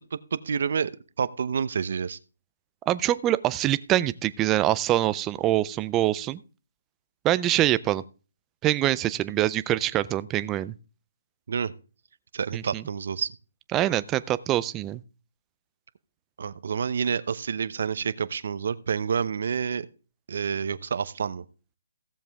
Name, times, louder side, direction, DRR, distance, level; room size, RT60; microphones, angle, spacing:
voice 1, 0.1-0.9 1.2-2.2 11.5-11.7 12.3-13.3 16.4-19.9 20.3-21.4, right 6 dB, 55° right, 14 dB, 0.8 m, -28 dB
voice 2, 2.9-6.4 7.2-8.0 8.6-10.7 12.5-12.8 13.7-15.0, right 14 dB, 15° right, 16 dB, 0.4 m, -24 dB
16.0 x 7.3 x 3.5 m, 0.35 s
hypercardioid pair, 165°, 0 cm